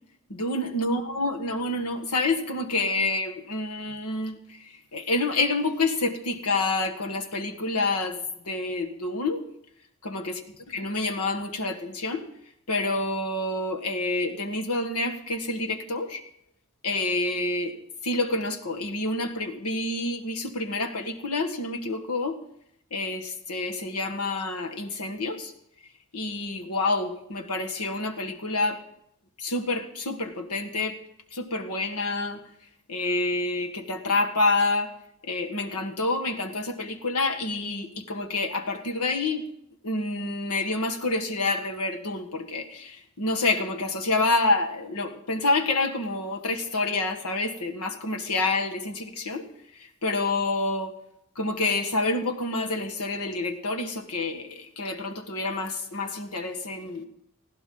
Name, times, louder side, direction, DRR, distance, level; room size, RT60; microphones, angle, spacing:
voice 1, 0.3-8.2 8.4-9.4 10.0-10.4 10.7-12.3 12.7-16.2 16.8-17.7 18.0-22.4 22.9-25.5 26.1-28.8 29.4-31.0 31.3-32.4 32.9-34.9 35.3-39.5 39.8-49.5 49.8-50.9 51.3-57.0, left 2 dB, 90° left, 5 dB, 1.7 m, -28 dB
20.0 x 15.0 x 3.8 m, 0.74 s
head